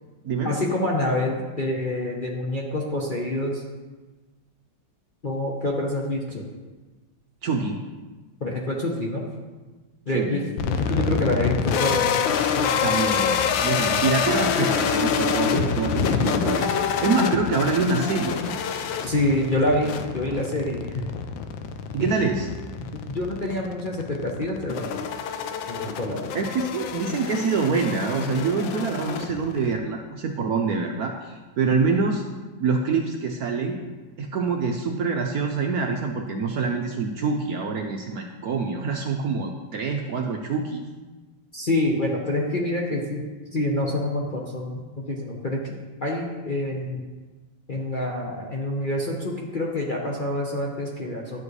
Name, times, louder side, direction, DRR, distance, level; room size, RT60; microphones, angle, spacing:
voice 1, 0.4-3.6 5.2-6.4 8.4-9.3 10.1-12.2 12.6-12.9 15.6-15.7 19.0-21.0 22.0-22.1 22.8-25.0 25.7-26.4 41.5-43.2 43.5-45.7 46.0-47.0 47.7-51.4, left 1 dB, 35° left, -2 dB, 0.8 m, -27 dB
voice 2, 7.4-7.8 10.1-10.4 12.8-18.6 21.9-22.5 26.3-32.2 32.6-33.8 34.2-40.8, right 4 dB, 65° right, 3 dB, 1.0 m, -25 dB
sound 1, 10.6-29.8, left 7 dB, 80° left, 1.4 m, -26 dB
11.0 x 7.3 x 3.2 m, 1.3 s
omnidirectional pair, 2.1 m